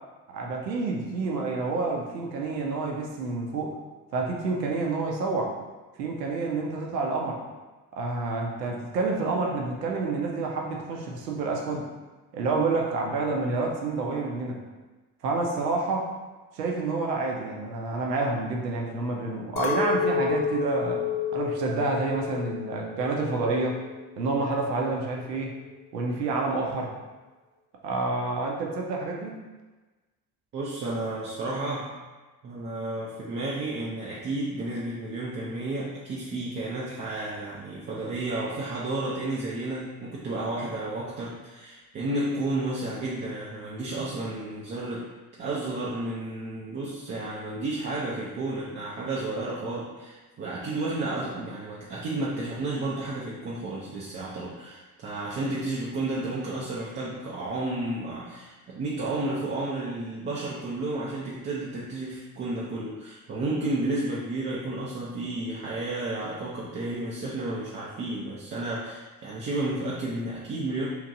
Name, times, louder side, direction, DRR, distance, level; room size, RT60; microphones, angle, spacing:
voice 1, 0.3-3.8 4.1-5.5 6.0-7.4 7.9-11.9 12.3-14.6 15.2-16.1 16.5-21.1 21.3-23.8 24.2-25.5 25.9-26.9 27.8-29.4, right 3 dB, 80° right, 0 dB, 0.6 m, -28 dB
Chink clink, 19.6-24.0 24.3-24.9, left 5 dB, 60° left, 0.6 m, -30 dB
voice 2, 30.5-32.0 32.4-45.1 45.4-70.9, right 2 dB, 25° right, -6 dB, 0.4 m, -32 dB
2.9 x 2.5 x 2.5 m, 1.2 s
figure-of-eight pair, 50°, 48 cm